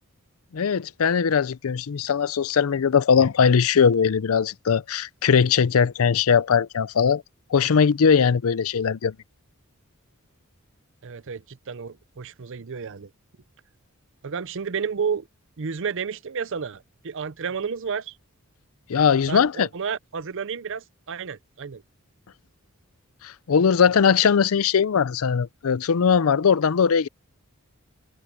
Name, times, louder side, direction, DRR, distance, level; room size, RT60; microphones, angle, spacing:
voice 1, 0.5-7.2 7.5-9.1 18.9-19.7 23.2-27.1, left 6 dB, 75° left, 0.5 m, -20 dB
voice 2, 11.0-13.1 14.2-15.3 15.6-18.2 19.3-21.8, right 6 dB, 60° right, 0.6 m, -31 dB
open air
head